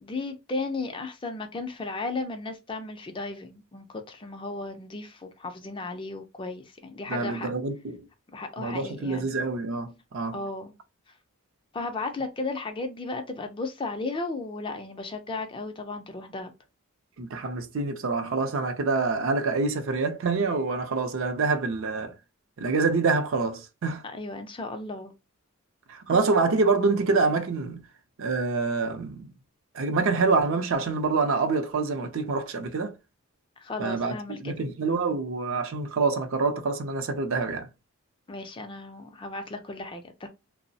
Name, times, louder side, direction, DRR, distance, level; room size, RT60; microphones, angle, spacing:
voice 1, 0.0-7.5 8.3-9.3 10.3-10.7 11.7-16.5 24.0-25.1 33.6-34.5 38.3-40.3, left 3 dB, 20° left, 0.3 m, -35 dB
voice 2, 7.1-8.0 8.6-10.4 17.2-22.1 22.6-24.0 25.9-27.8 28.2-29.3 29.7-32.9 33.8-34.2 34.4-37.7, right 4 dB, 60° right, 0.5 m, -26 dB
3.0 x 2.0 x 2.6 m
head